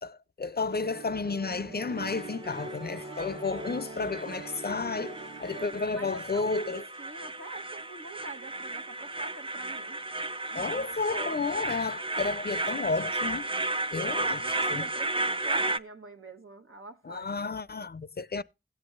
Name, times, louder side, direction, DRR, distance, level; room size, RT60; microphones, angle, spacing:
voice 1, 0.0-6.8 10.5-13.5 13.9-14.8 17.0-18.4, left 4 dB, 50° left, 0.4 m, -32 dB
sound 1, 0.7-5.8, right 3 dB, 65° right, 1.3 m, -42 dB
sound 2, 2.0-15.8, right 2 dB, 25° right, 0.5 m, -34 dB
voice 2, 5.9-10.0 10.5-11.6 14.1-17.3, right 3 dB, 90° right, 1.2 m, -45 dB
16.5 x 7.9 x 2.4 m
wide cardioid pair, 45°, 21 cm